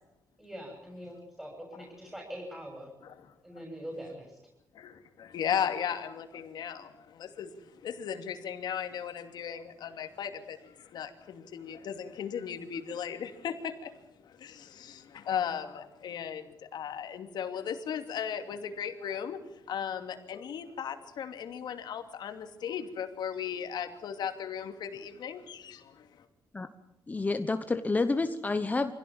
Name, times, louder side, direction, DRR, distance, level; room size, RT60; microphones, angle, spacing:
voice 1, 0.4-2.9 3.4-4.4, equal, 5° right, 0 dB, 6.7 m, -43 dB
voice 2, 4.7-26.2, left 8 dB, 75° left, 7 dB, 2.8 m, -37 dB
voice 3, 27.1-28.9, left 3 dB, 20° left, 9 dB, 1.1 m, -29 dB
25.5 x 17.0 x 9.0 m, 0.84 s
cardioid pair, 125°, 7 cm